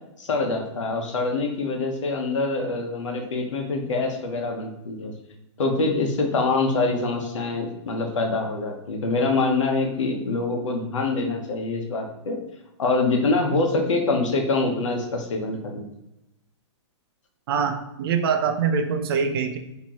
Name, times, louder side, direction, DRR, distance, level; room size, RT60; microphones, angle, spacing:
voice 1, 0.2-5.1 5.6-12.4 12.8-15.9, left 3 dB, 90° left, 2 dB, 1.0 m, -25 dB
voice 2, 17.5-19.6, right 6 dB, 50° right, 6 dB, 0.6 m, -24 dB
4.5 x 2.9 x 2.9 m, 0.90 s
hypercardioid pair, 155°, 15 cm